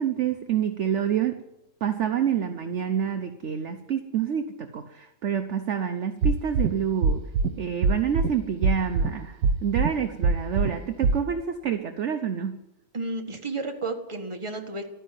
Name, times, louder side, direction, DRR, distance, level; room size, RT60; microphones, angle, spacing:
voice 1, 0.0-1.4 1.8-7.2 7.6-12.5, right 8 dB, 55° right, 7 dB, 0.8 m, -27 dB
sound 1, 6.2-6.7 7.0-7.5 7.8-8.3 8.6-9.1 9.4-9.9 10.2-10.7 11.0-11.1, right 4 dB, 75° right, 1.8 m, -21 dB
voice 2, 12.9-14.9, right 2 dB, 15° right, 3 dB, 1.6 m, -32 dB
13.0 x 10.0 x 9.1 m, 0.93 s
omnidirectional pair, 2.0 m